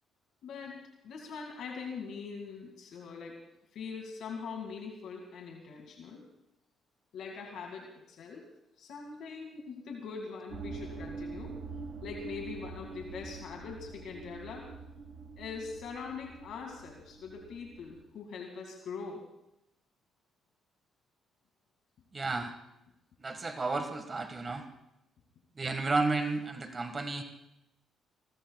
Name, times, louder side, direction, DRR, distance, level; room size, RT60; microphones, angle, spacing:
voice 1, 0.4-3.4 3.7-6.2 7.1-8.5 8.8-11.6 12.0-14.7 15.4-19.3, left 5 dB, 75° left, 0 dB, 2.2 m, -42 dB
sound 1, 10.5-18.0, right 4 dB, 70° right, 1.7 m, -45 dB
voice 2, 22.1-22.5 23.2-24.7 25.6-27.2, right 3 dB, 30° right, 6 dB, 1.7 m, -32 dB
26.0 x 20.5 x 2.4 m, 0.87 s
cardioid pair, 90°, 0 cm